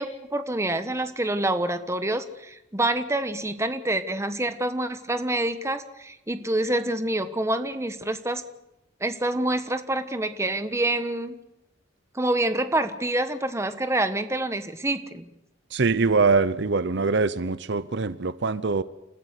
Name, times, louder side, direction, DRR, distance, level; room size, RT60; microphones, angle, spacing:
voice 1, 0.0-8.4 9.0-11.3 12.1-15.3, right 1 dB, 15° right, 10 dB, 1.2 m, -27 dB
voice 2, 15.7-18.8, right 4 dB, 65° right, 15 dB, 0.7 m, -23 dB
29.5 x 14.0 x 8.2 m, 0.90 s
head